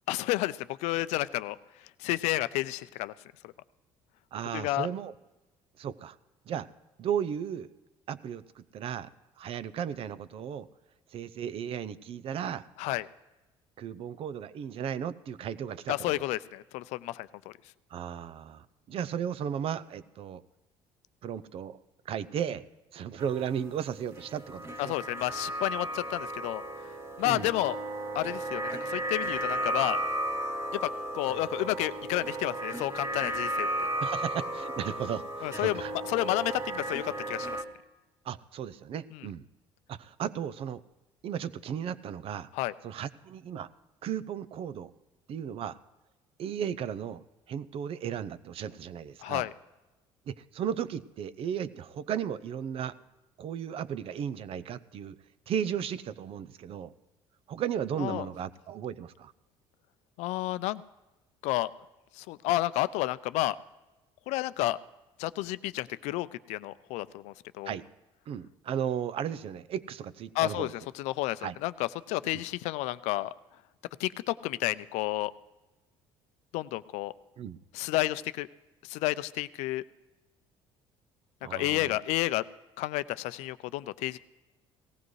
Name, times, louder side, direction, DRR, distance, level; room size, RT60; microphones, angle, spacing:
voice 1, 0.1-3.1 3.4-3.5 4.5-4.9 12.8-13.1 15.9-17.5 24.8-26.6 27.2-27.8 28.1-30.0 30.7-33.7 35.4-35.8 36.1-37.6 39.1-39.3 42.5-42.7 49.2-49.5 58.0-58.3 60.2-60.8 61.4-61.7 62.1-63.6 64.3-64.8 65.2-67.8 70.3-73.3 74.0-75.3 76.5-77.1 77.7-78.5 78.8-79.8 81.5-82.4 82.8-84.2, left 17 dB, 80° left, 15 dB, 0.5 m, -31 dB
voice 2, 4.3-5.1 5.8-6.2 6.5-6.7 7.0-7.7 8.1-9.1 9.4-10.7 11.1-12.7 13.8-16.3 17.9-20.4 21.2-22.6 22.9-24.9 27.3-27.5 34.0-35.9 38.2-39.4 39.9-40.8 41.2-42.5 42.8-43.7 44.0-44.9 45.3-45.8 46.4-47.2 47.5-49.5 50.3-53.0 53.4-55.2 55.5-56.9 57.5-59.3 67.7-67.8 68.3-70.7 71.4-71.6 77.4-77.6 81.4-82.0, right 8 dB, 55° right, 15 dB, 0.6 m, -35 dB
sound 1, 23.2-37.6, right 1 dB, 25° right, 1.7 m, -34 dB
18.0 x 15.0 x 3.2 m, 1.1 s
supercardioid pair, 85°, 12 cm